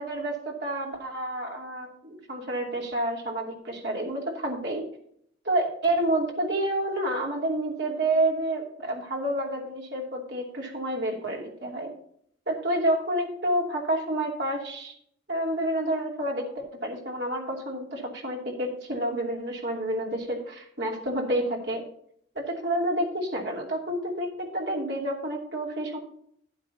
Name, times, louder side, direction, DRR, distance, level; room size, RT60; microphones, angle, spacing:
voice 1, 0.0-4.8 5.4-11.9 12.5-14.9 15.3-21.8 22.3-26.0, right 1 dB, 65° right, -1 dB, 2.8 m, -29 dB
12.0 x 10.0 x 2.8 m, 0.67 s
head